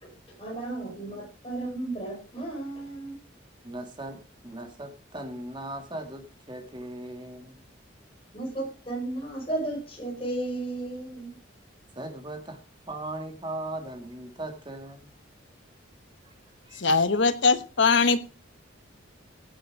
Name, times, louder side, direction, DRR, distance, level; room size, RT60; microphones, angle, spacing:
voice 1, 0.0-3.2 8.3-11.3, right 2 dB, 30° left, 1 dB, 5.1 m, -34 dB
voice 2, 3.6-4.2 4.4-7.6 12.0-12.6 12.9-15.1 16.2-16.3 16.6-16.8, right 1 dB, 25° right, 5 dB, 2.1 m, -38 dB
voice 3, 16.7-18.2, left 4 dB, 70° left, 10 dB, 1.2 m, -21 dB
17.0 x 7.6 x 4.9 m, 0.33 s
head